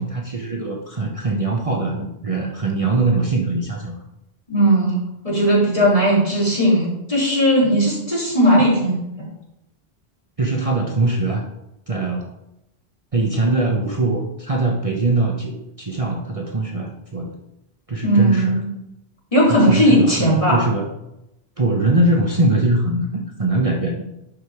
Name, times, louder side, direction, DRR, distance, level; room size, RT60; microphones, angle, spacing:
voice 1, 0.0-4.0 10.4-11.4 11.9-12.3 13.1-17.3 17.9-18.6 19.5-20.9 21.6-24.0, right 2 dB, 35° right, 0 dB, 1.0 m, -22 dB
voice 2, 4.5-8.9 9.2-9.3 18.0-18.7 19.3-20.6, equal, 35° left, -6 dB, 3.5 m, -17 dB
11.0 x 5.1 x 4.9 m, 0.88 s
omnidirectional pair, 1.1 m